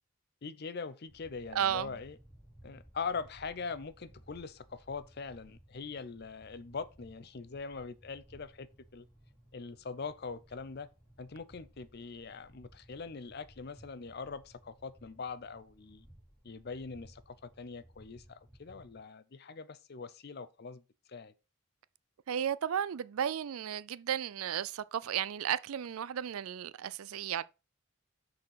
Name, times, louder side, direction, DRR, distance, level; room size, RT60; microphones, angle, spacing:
voice 1, 0.4-2.2 2.6-9.0 9.5-10.9 11.2-16.1 16.4-20.8 21.1-21.3, left 5 dB, 50° left, 0.6 m, -42 dB
sound 1, 1.1-19.0, right 1 dB, 5° left, 3.3 m, -59 dB
voice 2, 1.5-1.9 22.3-27.4, right 9 dB, 85° right, 0.4 m, -34 dB
6.4 x 4.2 x 5.6 m
head